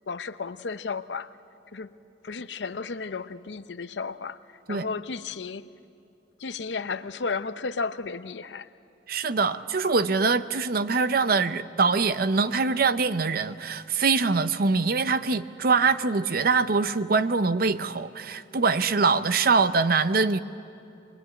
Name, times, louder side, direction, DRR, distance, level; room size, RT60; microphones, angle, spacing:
voice 1, 0.1-1.3 1.7-1.9 2.2-4.4 4.7-5.7 6.4-8.7, left 4 dB, 85° left, 0.7 m, -33 dB
voice 2, 9.1-20.4, right 4 dB, 55° right, 0.7 m, -23 dB
23.0 x 21.5 x 9.4 m
head